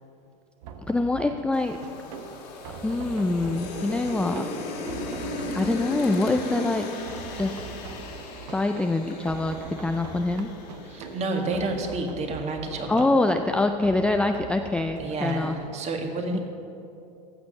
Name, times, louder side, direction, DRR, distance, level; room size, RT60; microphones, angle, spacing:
sound 1, 0.6-15.4, right 5 dB, 75° right, 1.0 m, -42 dB
voice 1, 0.9-1.8 2.8-4.5 5.5-6.9 7.4-7.7 8.5-10.5 12.9-15.6 16.3-16.4, left 2 dB, 5° left, 6 dB, 0.4 m, -25 dB
sound 2, 1.5-11.9, left 2 dB, 75° left, 2.6 m, -36 dB
Mechanisms, 3.5-8.5 9.1-9.3 9.9-10.2 10.6-10.7, left 7 dB, 50° left, 1.7 m, -49 dB
voice 2, 10.8-13.1 15.0-16.4, right 3 dB, 30° right, 3 dB, 1.7 m, -30 dB
15.0 x 6.1 x 6.5 m, 2.7 s
hypercardioid pair, 105°, 21 cm